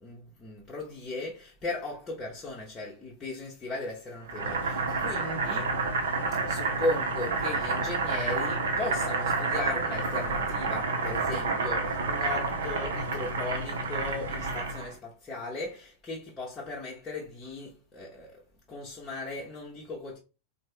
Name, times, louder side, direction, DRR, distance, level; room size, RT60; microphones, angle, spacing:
voice 1, 0.0-5.8 6.5-18.4 18.7-20.2, left 2 dB, 20° left, 0.9 m, -37 dB
Boiling, 4.3-14.9, right 4 dB, 60° right, 0.8 m, -29 dB
4.2 x 2.1 x 3.4 m
figure-of-eight pair, 90°, 0 cm